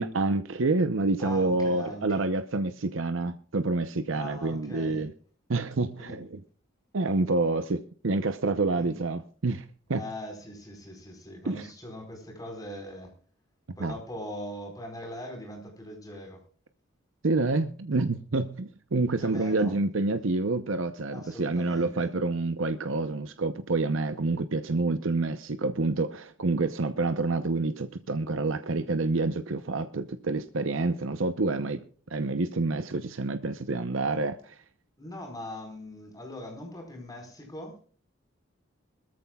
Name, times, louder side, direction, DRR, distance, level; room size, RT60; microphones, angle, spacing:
voice 1, 0.0-5.1 5.5-6.4 6.9-10.1 11.4-11.7 13.8-14.0 17.2-31.8 32.1-34.6, right 3 dB, 80° right, 0.8 m, -28 dB
voice 2, 1.2-2.3 4.1-5.0 6.0-6.2 8.7-9.0 9.9-13.1 13.8-16.4 19.2-19.8 20.1-20.2 21.1-22.1 35.0-37.8, left 1 dB, 20° left, 4.5 m, -41 dB
21.0 x 14.0 x 2.3 m
head